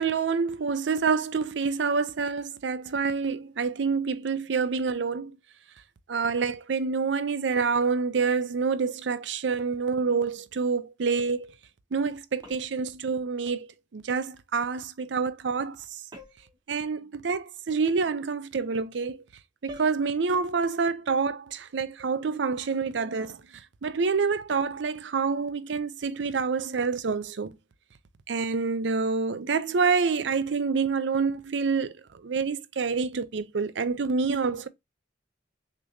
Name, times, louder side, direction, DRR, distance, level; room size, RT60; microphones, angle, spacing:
voice 1, 0.0-5.3 6.1-11.5 11.9-15.8 16.7-19.2 19.6-23.4 23.8-27.5 28.3-32.0 32.2-34.7, right 5 dB, 75° right, 0.5 m, -27 dB
sound 1, 12.4-12.9 16.1-16.6 19.7-20.0, equal, 25° right, 1.2 m, -46 dB
6.5 x 3.0 x 2.6 m
head